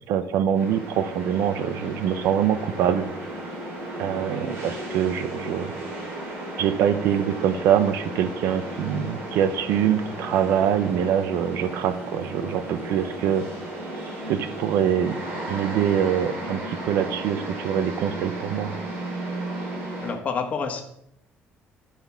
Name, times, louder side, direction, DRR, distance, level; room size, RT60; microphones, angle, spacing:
voice 1, 0.1-3.1 4.0-5.7 6.6-13.5 14.3-15.2 15.5-18.7, right 9 dB, 85° right, 13 dB, 0.7 m, -24 dB
sound 1, 0.5-20.1, right 1 dB, 50° right, 3.6 m, -34 dB
voice 2, 20.0-20.8, left 5 dB, 35° left, 4 dB, 1.4 m, -28 dB
10.5 x 5.7 x 5.8 m, 0.75 s
cardioid pair, 160°, 4 cm